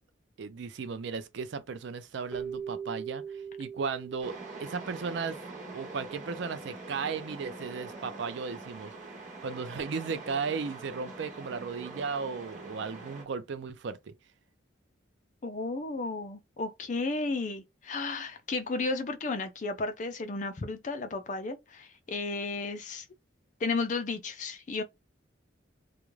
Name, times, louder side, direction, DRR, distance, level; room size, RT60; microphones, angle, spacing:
voice 1, 0.4-3.2 3.6-5.4 5.7-8.9 9.4-14.1, right 5 dB, 65° right, 0.4 m, -35 dB
Keyboard (musical), 2.3-5.6, right 7 dB, 10° right, 0.5 m, -41 dB
sound 1, 4.2-13.2, right 3 dB, 40° right, 1.0 m, -44 dB
voice 2, 15.4-23.0 23.6-24.8, left 3 dB, 40° left, 0.4 m, -33 dB
2.4 x 2.1 x 3.0 m
head